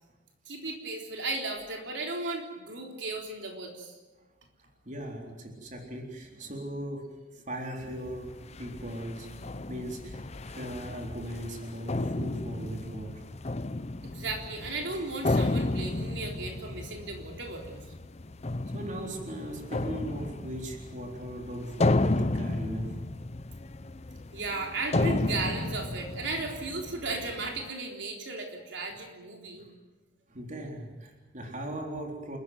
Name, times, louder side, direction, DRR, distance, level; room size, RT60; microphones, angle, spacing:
voice 1, 0.5-3.9 14.0-17.8 24.3-29.7, right 3 dB, 65° right, 1 dB, 3.8 m, -35 dB
voice 2, 4.9-9.3 9.7-13.2 18.7-22.9 30.3-32.4, right 1 dB, 40° right, 1 dB, 3.9 m, -39 dB
sound 1, 7.8-27.7, left 2 dB, 35° left, 0.7 m, -33 dB
29.5 x 14.5 x 9.4 m, 1.2 s
head